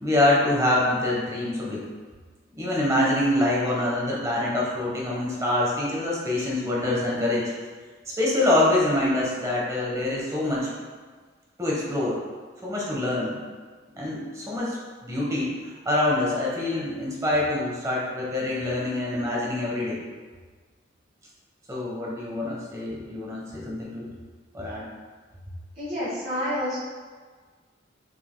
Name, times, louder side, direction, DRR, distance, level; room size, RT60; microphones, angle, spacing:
voice 1, 0.0-1.8 2.6-7.5 8.2-10.7 11.6-12.2 12.6-13.4 14.0-14.8 15.0-15.5 15.8-20.0 21.7-24.1 24.5-24.9, left 1 dB, 15° right, -5 dB, 1.1 m, -25 dB
voice 2, 25.7-26.8, equal, 35° right, -13 dB, 1.5 m, -28 dB
6.2 x 3.6 x 2.2 m, 1.5 s
head